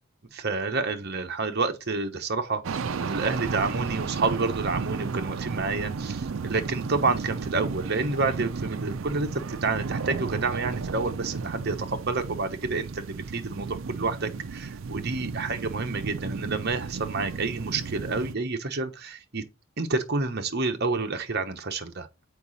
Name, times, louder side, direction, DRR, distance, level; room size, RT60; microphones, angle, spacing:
voice 1, 0.3-19.4 19.8-22.1, right 3 dB, 50° right, 1.1 m, -29 dB
sound 1, 2.6-18.3, right 5 dB, 70° right, 0.5 m, -33 dB
7.0 x 4.9 x 4.1 m
head